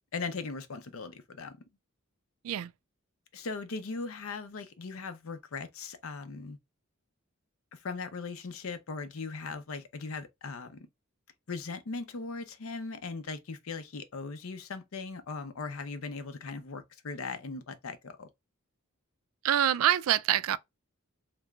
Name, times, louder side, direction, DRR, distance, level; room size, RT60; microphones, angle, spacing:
voice 1, 0.1-1.6 3.3-6.6 7.7-10.9 11.5-18.3, left 4 dB, 75° left, 0.6 m, -39 dB
voice 2, 19.4-20.6, right 11 dB, 75° right, 0.3 m, -25 dB
3.3 x 2.9 x 2.3 m
head